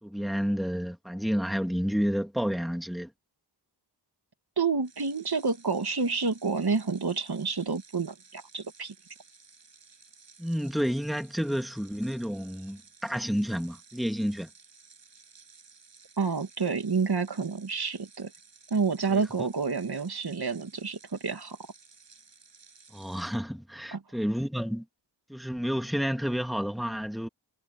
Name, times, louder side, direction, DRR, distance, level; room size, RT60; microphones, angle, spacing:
voice 1, 0.0-3.1 10.4-14.5 19.1-19.2 22.9-24.8 25.3-27.3, equal, ahead, 2.4 m, -30 dB
voice 2, 4.6-8.9 16.2-18.3 18.7-21.6 23.9-24.0, right 4 dB, 60° right, 2.4 m, -29 dB
sound 1, 4.8-23.4, right 5 dB, 85° right, 7.5 m, -56 dB
wide cardioid pair, 60°, 43 cm